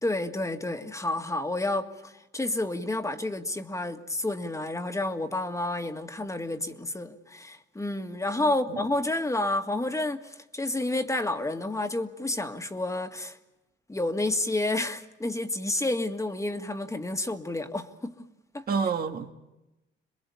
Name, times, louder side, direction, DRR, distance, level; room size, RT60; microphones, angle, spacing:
voice 1, 0.0-13.4 13.9-18.1 18.5-18.6, left 2 dB, 15° left, 1.9 m, -30 dB
voice 2, 8.4-8.8 18.7-19.3, right 5 dB, 50° right, 1.6 m, -29 dB
27.5 x 22.0 x 8.5 m
cardioid pair, 90°, 20 cm